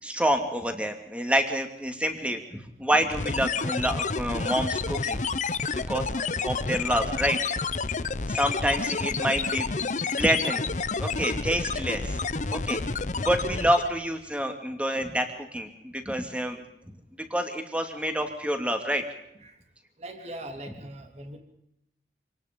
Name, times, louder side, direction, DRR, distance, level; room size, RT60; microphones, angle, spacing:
voice 1, 0.0-5.2 5.9-6.1 6.4-7.4 8.3-9.7 10.0-10.6 11.0-12.2 12.5-12.8 13.1-16.6 17.3-19.0, equal, 5° right, 5 dB, 2.6 m, -27 dB
sound 1, 3.1-14.0, left 4 dB, 45° left, 0.8 m, -29 dB
voice 2, 8.3-8.6 11.3-11.4 19.4-19.6 20.0-21.4, right 1 dB, 40° right, 5 dB, 3.2 m, -41 dB
27.0 x 19.0 x 5.4 m, 0.80 s
head